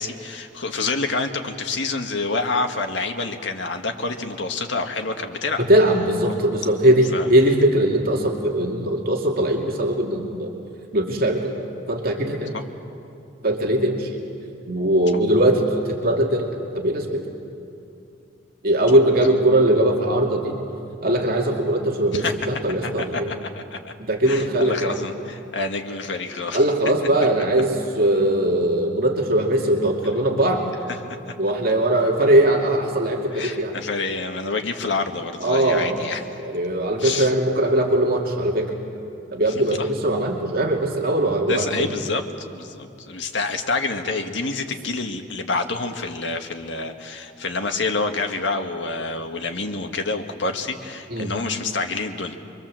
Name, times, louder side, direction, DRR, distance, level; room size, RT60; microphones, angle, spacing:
voice 1, 0.0-5.7 6.3-6.4 6.6-6.7 7.1-7.3 12.5-12.6 22.1-22.3 22.8-23.9 24.3-26.6 30.9-31.2 33.3-36.2 37.0-37.3 39.8-39.9 41.5-42.2 42.5-52.4, left 3 dB, 80° left, 5 dB, 1.8 m, -27 dB
voice 2, 5.6-10.5 10.9-11.5 11.9-12.6 13.4-14.2 14.7-17.2 18.6-20.6 21.0-23.3 24.0-25.0 26.5-30.6 31.4-33.7 35.4-36.0 36.4-38.7 39.3-41.9 51.1-51.3, right 1 dB, 55° right, 1 dB, 2.6 m, -20 dB
25.5 x 23.5 x 7.7 m, 2.6 s
head